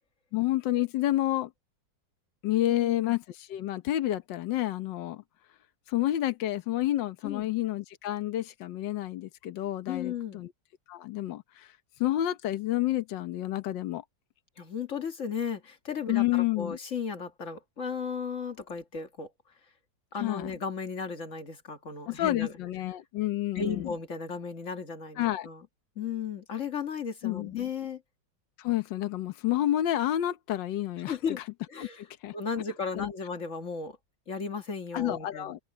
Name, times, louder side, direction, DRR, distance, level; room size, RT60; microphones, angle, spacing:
voice 1, 0.3-1.5 2.4-5.2 5.9-10.5 10.9-11.7 12.0-14.0 16.1-16.8 20.2-20.5 22.1-23.9 25.2-25.5 27.2-27.5 28.6-31.4 31.8-32.3 32.9-33.1 34.9-35.7, left 14 dB, 80° left, 1.6 m, -29 dB
voice 2, 2.7-3.2 7.2-7.5 9.9-10.4 14.6-19.3 20.1-22.5 23.5-25.7 26.0-28.0 31.1-31.4 31.7-32.0 32.3-34.0 34.3-35.6, left 6 dB, 40° left, 2.1 m, -35 dB
open air
omnidirectional pair, 2.0 m